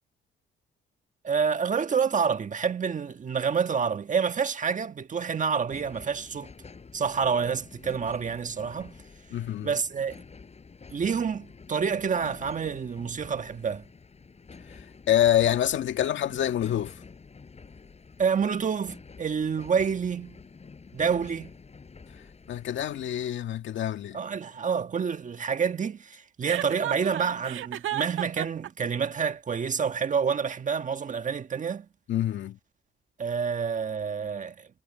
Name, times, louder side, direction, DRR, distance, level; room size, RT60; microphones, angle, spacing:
voice 1, 1.2-6.5 6.9-9.0 9.6-10.2 10.9-13.9 18.2-20.4 20.9-21.5 24.1-31.9 33.2-34.7, right 6 dB, 40° right, 1.5 m, -28 dB
sound 1, 5.7-23.2, left 4 dB, 35° left, 6.7 m, -48 dB
voice 2, 9.3-9.7 15.1-16.9 22.5-24.2 32.1-32.6, left 11 dB, 70° left, 2.0 m, -26 dB
Chuckle chortle, 26.4-28.7, right 12 dB, 80° right, 1.8 m, -32 dB
cardioid pair, 90°, 20 cm